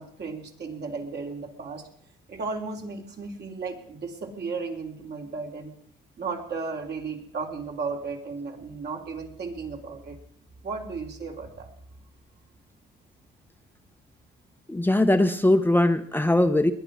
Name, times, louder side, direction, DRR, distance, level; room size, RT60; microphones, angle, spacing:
voice 1, 0.0-1.8 2.3-5.7 6.2-10.2 10.6-11.7, right 4 dB, 55° right, 2 dB, 3.3 m, -34 dB
voice 2, 14.7-16.7, left 1 dB, 10° left, 8 dB, 0.8 m, -20 dB
21.0 x 9.9 x 6.1 m, 0.64 s
cardioid pair, 90°, 20 cm